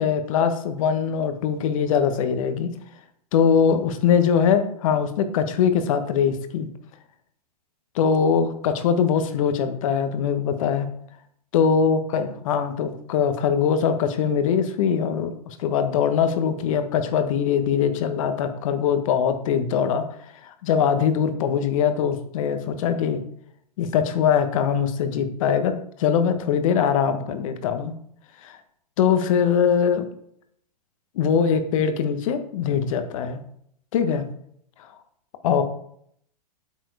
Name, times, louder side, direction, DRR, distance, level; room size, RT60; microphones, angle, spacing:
voice 1, 0.0-2.7 3.3-6.7 7.9-10.9 11.5-20.0 20.4-23.2 23.8-25.7 26.0-27.9 28.4-28.6 29.0-30.1 31.1-33.4 33.9-34.3 35.4-35.6, left 7 dB, 50° left, 8 dB, 1.3 m, -22 dB
8.5 x 6.3 x 4.8 m, 0.68 s
hypercardioid pair, 115°, 21 cm